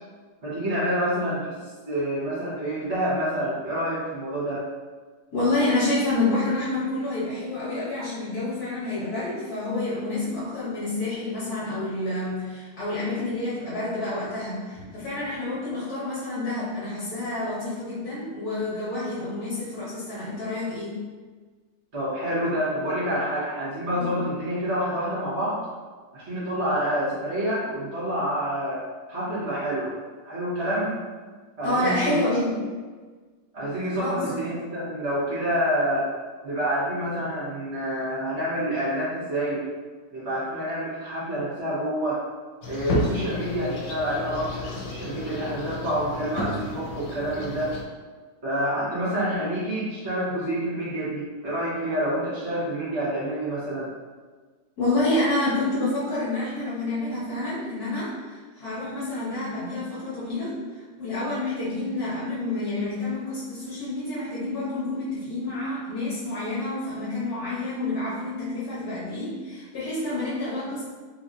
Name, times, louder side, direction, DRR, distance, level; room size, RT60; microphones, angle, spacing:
voice 1, 0.4-1.5 1.8-4.7 21.9-25.6 26.1-28.8 29.1-29.9 30.2-31.0 31.6-32.2 33.5-36.1 36.4-39.7 40.1-42.2 42.7-47.7 48.4-53.9, equal, 40° right, -11 dB, 1.3 m, -27 dB
voice 2, 5.3-21.0 23.9-24.2 31.6-32.5 34.0-34.4 54.8-70.8, left 2 dB, 60° left, -10 dB, 1.4 m, -28 dB
sound 1, 42.6-47.8, left 2 dB, 85° left, 1.3 m, -32 dB
3.8 x 2.8 x 2.4 m, 1.4 s
omnidirectional pair, 2.0 m